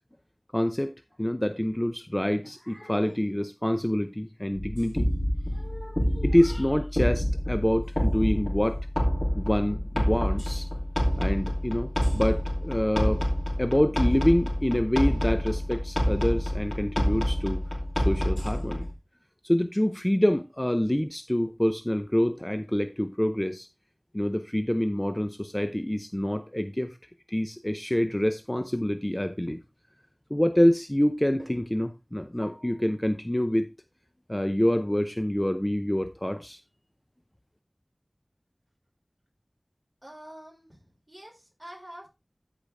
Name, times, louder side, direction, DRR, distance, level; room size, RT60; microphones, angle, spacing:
voice 1, 0.5-0.9 1.2-5.1 5.5-8.9 9.4-10.7 11.2-13.3 13.6-17.6 18.0-18.9 19.4-23.7 24.1-27.0 27.3-29.6 30.3-33.7 34.3-36.6, equal, 20° left, 0.7 m, -26 dB
sound 1, 4.5-18.9, equal, 40° left, 2.7 m, -27 dB
voice 2, 40.0-42.1, right 1 dB, 25° right, 5.1 m, -46 dB
13.5 x 5.1 x 3.4 m
wide cardioid pair, 40°, 0 cm